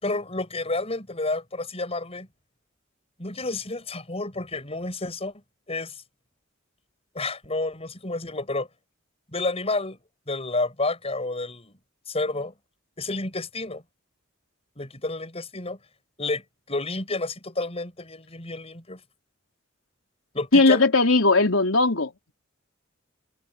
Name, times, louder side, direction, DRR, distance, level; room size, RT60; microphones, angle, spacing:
voice 1, 0.0-2.3 3.2-5.3 5.7-5.9 7.1-8.7 9.3-10.0 10.3-11.8 12.1-12.5 13.0-13.8 14.8-15.8 16.2-16.4 16.7-19.0 20.3-20.8, left 2 dB, 30° left, 6.0 m, -30 dB
voice 2, 20.5-22.3, left 3 dB, 85° left, 3.8 m, -19 dB
head